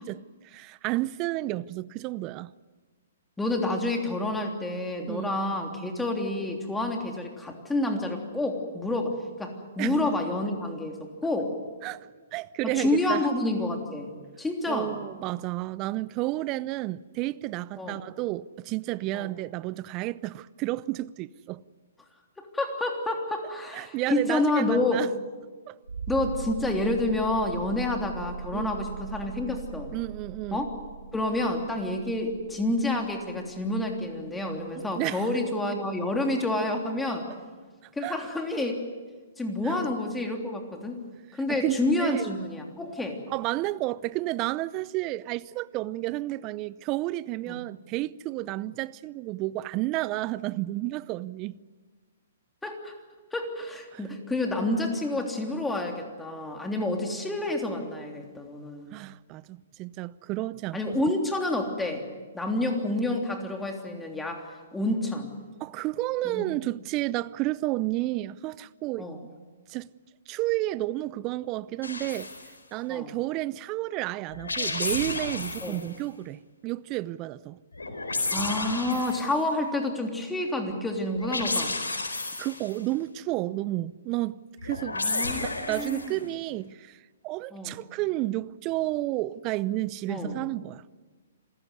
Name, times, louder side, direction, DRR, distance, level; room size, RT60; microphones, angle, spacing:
voice 1, 0.0-2.5 5.1-5.3 9.8-9.9 11.8-13.3 14.7-21.6 23.7-25.1 25.7-25.8 28.5-28.9 29.9-30.7 34.8-35.3 38.0-38.2 39.6-39.8 41.5-42.3 43.3-51.6 53.9-54.0 58.9-61.0 65.6-69.1 69.7-69.9 70.3-72.3 72.7-77.6 82.4-85.0 85.4-87.0 87.2-90.8, right 17 dB, 30° right, 0.6 m, -31 dB
voice 2, 3.4-11.0 11.2-11.5 12.6-15.0 17.8-18.0 19.1-19.3 22.4-25.0 26.1-29.9 30.5-30.7 31.1-37.3 37.9-38.8 39.4-41.0 41.3-43.2 47.5-47.6 52.6-52.9 53.3-59.0 60.7-62.0 62.3-64.4 64.7-65.3 66.2-66.4 69.0-69.2 72.9-73.1 75.6-75.8 78.3-81.7 84.9-86.1 87.5-87.8 90.1-90.3, left 2 dB, 5° left, 3.3 m, -29 dB
sound 1, 25.8-34.3 35.8-35.9, right 6 dB, 85° right, 2.4 m, -40 dB
sound 2, 71.8-72.5 74.3-75.9 77.7-79.4 81.2-82.8 84.6-86.2, left 3 dB, 90° left, 4.3 m, -32 dB
27.0 x 15.5 x 9.6 m
hypercardioid pair, 130°, 0 cm